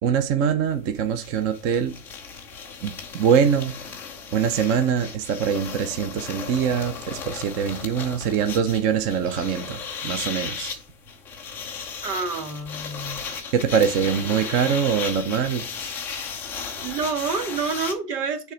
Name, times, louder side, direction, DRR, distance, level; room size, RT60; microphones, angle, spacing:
voice 1, 0.0-1.9 2.8-3.7 4.3-10.8 13.5-15.7, right 7 dB, 30° right, 0.7 m, -23 dB
sound 1, 0.7-0.8 1.0-17.9, left 6 dB, 5° left, 0.3 m, -35 dB
voice 2, 12.0-13.2 14.0-14.5 16.8-18.5, right 4 dB, 75° right, 1.5 m, -29 dB
6.5 x 3.4 x 5.0 m
hypercardioid pair, 115°, 48 cm